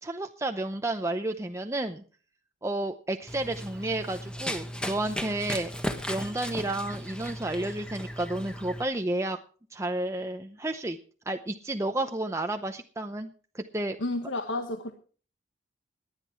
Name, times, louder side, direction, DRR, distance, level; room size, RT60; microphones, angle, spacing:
voice 1, 0.0-2.0 2.6-5.7 6.1-9.4 9.7-11.0 11.3-14.0, right 1 dB, 15° right, 5 dB, 0.7 m, -31 dB
Run, 3.3-8.8, equal, 5° left, 1.4 m, -36 dB
voice 2, 14.0-14.9, left 2 dB, 85° left, 6 dB, 1.4 m, -31 dB
18.0 x 10.5 x 4.6 m, 0.41 s
head